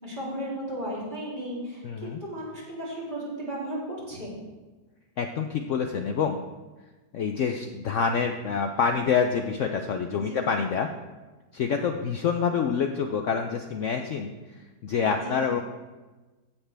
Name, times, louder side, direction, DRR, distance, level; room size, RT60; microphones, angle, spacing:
voice 1, 0.0-4.4 10.1-10.5 15.1-15.4, right 1 dB, 25° right, -7 dB, 3.6 m, -35 dB
voice 2, 1.8-2.2 5.2-6.4 7.1-10.9 11.5-14.3 14.8-15.6, left 6 dB, 75° left, 5 dB, 0.6 m, -27 dB
15.5 x 7.2 x 3.4 m, 1.2 s
omnidirectional pair, 2.0 m